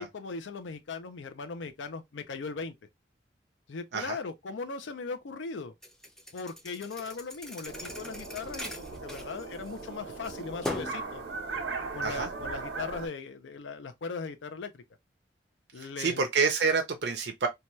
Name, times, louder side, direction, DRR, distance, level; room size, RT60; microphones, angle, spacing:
voice 1, 0.0-2.7 3.7-5.7 6.3-8.7 9.0-11.2 11.9-14.8 15.7-16.2, left 4 dB, 90° left, 0.5 m, -38 dB
Thump thud, 5.8-9.9 10.2-11.1, left 1 dB, 5° left, 0.4 m, -40 dB
sound 1, 7.7-13.1, right 4 dB, 85° right, 0.9 m, -38 dB
voice 2, 15.8-17.5, right 5 dB, 70° right, 0.5 m, -28 dB
2.8 x 2.2 x 3.0 m
head